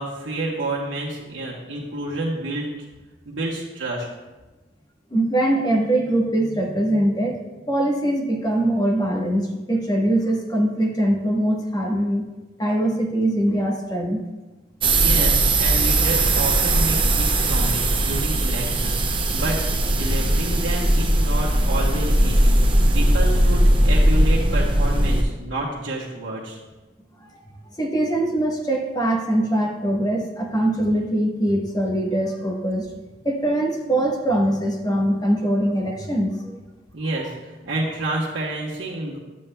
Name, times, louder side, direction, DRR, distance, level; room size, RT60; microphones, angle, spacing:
voice 1, 0.0-2.7 3.2-4.1 15.0-19.6 19.9-26.6 36.9-39.2, right 2 dB, 85° right, -7 dB, 1.2 m, -29 dB
voice 2, 5.1-7.4 7.7-12.2 12.6-14.2 27.2-27.3 27.8-32.9 33.2-36.6, right 1 dB, 20° left, -1 dB, 1.1 m, -22 dB
sound 1, 14.8-25.2, right 1 dB, 30° right, 0.6 m, -19 dB
11.5 x 7.5 x 2.2 m, 1.2 s
head